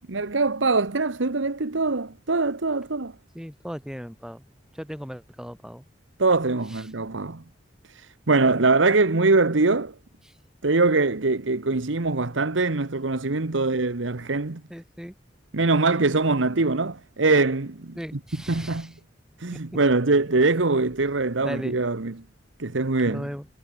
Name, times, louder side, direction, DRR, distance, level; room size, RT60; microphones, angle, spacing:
voice 1, 0.1-3.1 6.2-7.4 7.9-9.9 10.6-14.6 15.5-18.0 18.5-18.9 19.4-22.1 22.6-23.2, right 3 dB, 90° right, 1.2 m, -23 dB
voice 2, 3.3-4.4 4.7-5.8 6.7-6.9 10.2-10.4 14.7-15.1 18.0-18.9 19.5-19.6 21.4-21.8 23.1-23.5, equal, 5° right, 4.6 m, -37 dB
head